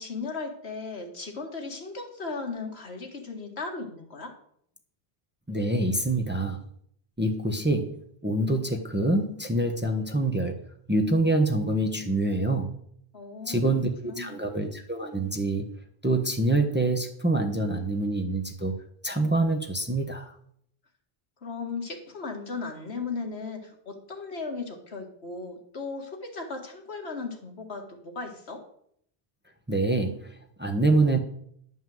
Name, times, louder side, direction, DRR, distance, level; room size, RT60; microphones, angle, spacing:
voice 1, 0.0-4.3 13.1-13.7 14.0-14.4 21.4-28.6, left 4 dB, 75° left, 2 dB, 2.1 m, -36 dB
voice 2, 5.5-6.6 7.2-10.6 10.9-12.7 13.5-13.9 14.2-15.7 16.0-18.7 19.0-20.3 29.7-31.2, right 2 dB, 10° right, 4 dB, 1.0 m, -26 dB
11.0 x 5.6 x 7.8 m, 0.68 s
omnidirectional pair, 1.1 m